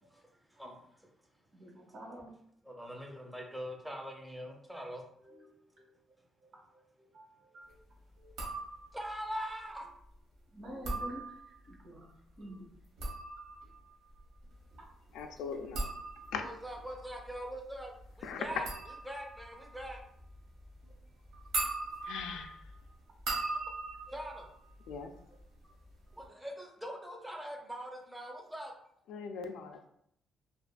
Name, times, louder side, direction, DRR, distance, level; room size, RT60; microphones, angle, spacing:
voice 1, 0.1-1.1 2.6-5.0 8.9-9.9 16.4-18.7 19.0-20.0 23.5-23.6 24.1-24.5 26.1-28.7, equal, 5° right, 1 dB, 0.6 m, -42 dB
voice 2, 1.5-2.3 5.2-6.0 6.4-7.8 8.2-8.4 10.5-11.2 11.7-12.7 24.1-24.2 25.6-25.7 26.1-26.2, right 1 dB, 70° right, -3 dB, 1.2 m, -50 dB
sound 1, 8.3-9.1 10.6-11.7 12.7-25.4 25.7-26.3, right 2 dB, 90° right, 0.9 m, -41 dB
voice 3, 15.1-15.9 16.3-16.5 18.2-18.4 22.1-22.6 24.9-25.1 29.1-29.9, left 6 dB, 85° left, 6 dB, 0.3 m, -40 dB
2.8 x 2.4 x 2.3 m, 0.71 s
cardioid pair, 90°, 0 cm